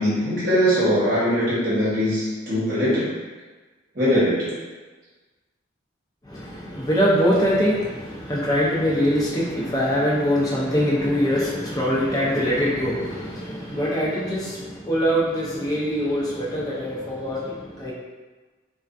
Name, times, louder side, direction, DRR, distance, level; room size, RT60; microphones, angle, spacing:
voice 1, 0.0-3.1 3.9-4.5, equal, 45° right, -9 dB, 0.9 m, -21 dB
voice 2, 6.2-17.9, equal, 20° left, -7 dB, 0.5 m, -23 dB
2.4 x 2.2 x 2.4 m, 1.3 s
head